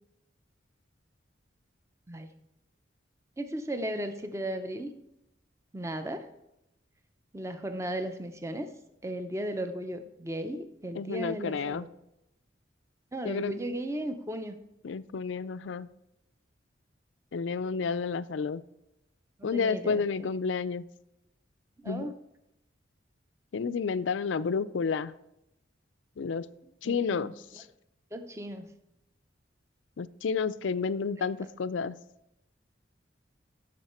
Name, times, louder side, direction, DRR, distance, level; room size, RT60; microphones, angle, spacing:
voice 1, 3.4-4.9 5.7-6.3 7.3-8.7 9.0-11.9 13.1-14.6 19.4-20.3 21.8-22.1 26.8-27.3 28.1-28.7 30.8-30.9 31.2-31.3, right 1 dB, 15° right, 8 dB, 0.6 m, -36 dB
voice 2, 10.9-11.9 13.2-13.5 14.8-15.9 17.3-18.6 19.4-20.9 21.9-22.1 23.5-25.1 26.2-26.5 26.8-27.6 30.0-32.0, left 5 dB, 85° left, 16 dB, 0.4 m, -30 dB
15.5 x 6.5 x 4.4 m, 0.87 s
head